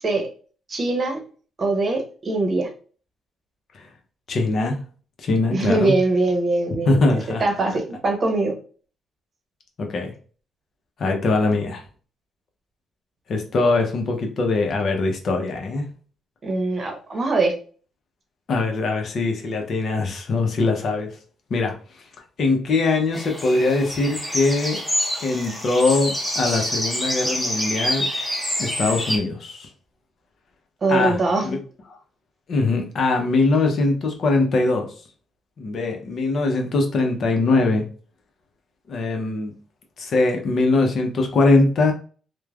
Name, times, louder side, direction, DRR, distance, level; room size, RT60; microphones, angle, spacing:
voice 1, 0.7-1.2 1.6-2.7 5.5-7.0 7.4-8.5 16.4-17.5 30.8-31.5, right 2 dB, 40° right, 3 dB, 0.8 m, -22 dB
voice 2, 4.3-4.8 5.2-5.9 6.8-7.4 9.8-10.1 11.0-11.8 13.3-15.9 18.5-21.1 21.5-21.7 22.4-24.8 25.2-28.1 28.6-29.7 30.9-31.6 31.9-32.0 32.5-34.9 35.6-37.8 38.9-39.5 40.0-41.9, left 3 dB, 55° left, 3 dB, 0.7 m, -21 dB
sound 1, 23.1-29.2, equal, 5° left, 0.8 m, -27 dB
3.0 x 2.2 x 2.3 m, 0.40 s
cardioid pair, 90°, 0 cm